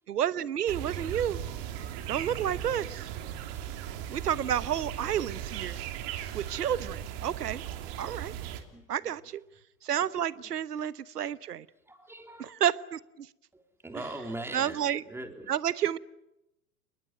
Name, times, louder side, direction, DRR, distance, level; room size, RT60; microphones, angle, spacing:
voice 1, 0.1-1.4 2.1-3.1 4.1-5.8 6.3-7.6 8.0-8.3 8.9-9.4 9.8-11.7 12.4-13.3 14.5-15.0 15.5-16.0, right 10 dB, 70° right, 18 dB, 1.2 m, -30 dB
sound 1, 0.7-8.6, right 10 dB, 40° right, 3.3 m, -38 dB
voice 2, 8.7-9.1 10.4-10.5 11.9-12.5 13.5-15.5, right 1 dB, 5° right, 5 dB, 3.6 m, -42 dB
29.5 x 20.5 x 9.2 m, 0.91 s
figure-of-eight pair, 105°, 48 cm